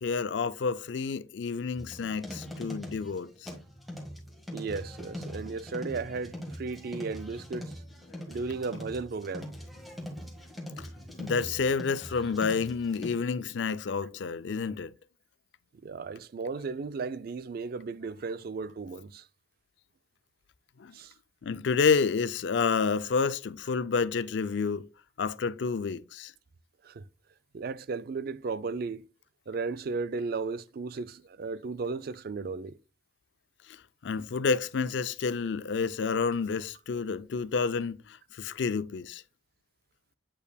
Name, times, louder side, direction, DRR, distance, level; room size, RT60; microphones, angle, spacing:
voice 1, 0.0-3.5 8.1-8.2 10.8-10.9 11.2-14.9 20.8-20.9 21.4-24.9 25.2-26.3 34.0-39.2, left 5 dB, 65° left, 0.4 m, -29 dB
sound 1, 1.7-13.1, equal, ahead, 1.6 m, -42 dB
voice 2, 4.5-7.8 8.3-9.5 15.8-19.3 20.9-21.1 26.8-27.1 27.5-29.1 29.5-32.8, right 4 dB, 50° right, 0.4 m, -35 dB
8.5 x 5.4 x 2.2 m
head